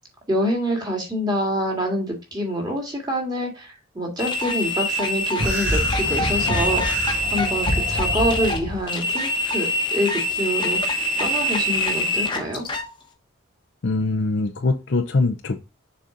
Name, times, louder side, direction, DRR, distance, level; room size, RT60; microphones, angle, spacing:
voice 1, 0.3-12.7, equal, 20° right, 0 dB, 1.9 m, -26 dB
sound 1, 4.2-12.9, left 1 dB, 20° left, 1.0 m, -24 dB
sound 2, 5.4-8.8, equal, 55° right, 1.7 m, -27 dB
voice 2, 13.8-15.6, left 3 dB, 55° left, 7 dB, 0.6 m, -22 dB
6.7 x 4.0 x 3.8 m, 0.27 s
head